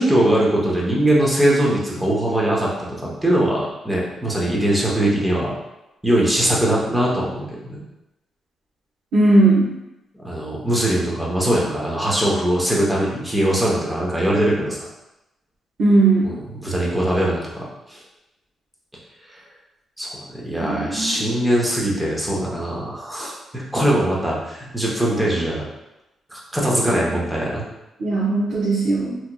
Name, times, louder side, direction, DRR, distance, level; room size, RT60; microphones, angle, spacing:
voice 1, 0.0-5.5 6.0-7.8 10.2-14.8 16.2-18.0 20.0-25.6 26.3-27.6, right 1 dB, 5° right, -4 dB, 0.8 m, -21 dB
voice 2, 9.1-9.7 15.8-16.4 20.6-21.5 28.0-29.2, right 2 dB, 70° right, -8 dB, 0.8 m, -18 dB
3.5 x 2.9 x 2.2 m, 0.93 s
cardioid pair, 135°, 0 cm